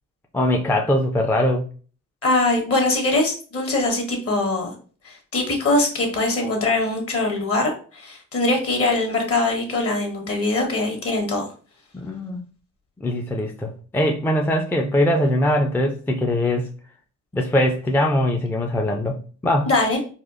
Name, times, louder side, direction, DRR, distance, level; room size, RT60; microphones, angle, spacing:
voice 1, 0.3-1.6 11.9-12.4 13.0-16.7 17.3-19.2 19.4-19.7, left 1 dB, 5° left, 1 dB, 0.4 m, -21 dB
voice 2, 2.2-4.7 5.0-11.4 19.7-20.0, left 2 dB, 50° left, 2 dB, 1.3 m, -22 dB
4.2 x 2.4 x 2.5 m, 0.39 s
cardioid pair, 90°, 30 cm